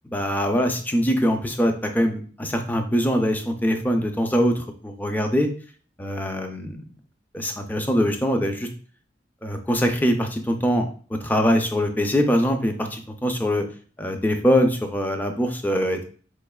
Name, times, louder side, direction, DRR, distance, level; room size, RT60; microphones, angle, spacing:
voice 1, 0.0-5.5 6.0-6.8 7.3-8.7 9.4-13.6 14.0-16.0, equal, 10° left, 5 dB, 0.4 m, -23 dB
4.1 x 3.1 x 2.2 m, 0.42 s
head